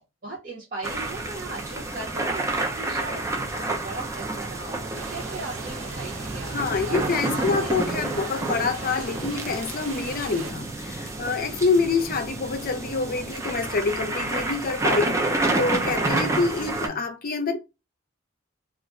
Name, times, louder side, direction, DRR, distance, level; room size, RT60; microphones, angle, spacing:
voice 1, 0.2-6.5 6.9-7.9 11.5-12.1 16.0-17.0, right 3 dB, 45° right, 0.8 m, -38 dB
sound 1, 0.8-16.9, right 2 dB, 15° right, 0.4 m, -29 dB
sound 2, 4.9-10.5, right 4 dB, 80° right, 0.5 m, -40 dB
voice 2, 6.5-17.6, left 4 dB, 45° left, 0.5 m, -26 dB
2.4 x 2.1 x 3.5 m
head